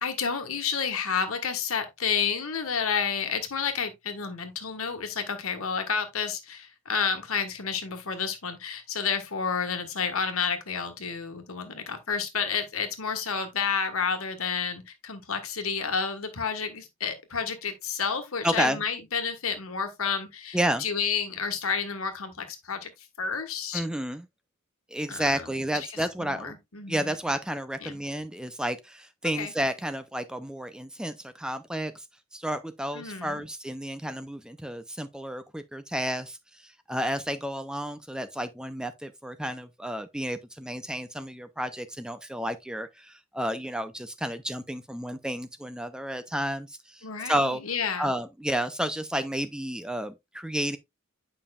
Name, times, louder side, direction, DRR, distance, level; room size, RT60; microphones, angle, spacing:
voice 1, 0.0-22.9 23.2-23.8 25.1-25.5 25.9-27.2 27.8-28.0 29.4-29.5 32.9-33.4 47.0-48.1, left 6 dB, 80° left, 1.4 m, -30 dB
voice 2, 18.4-18.8 20.5-20.9 23.7-24.2 24.9-26.5 26.9-32.0 32.3-47.6 48.0-50.8, equal, 5° right, 0.4 m, -31 dB
8.9 x 5.4 x 2.3 m
head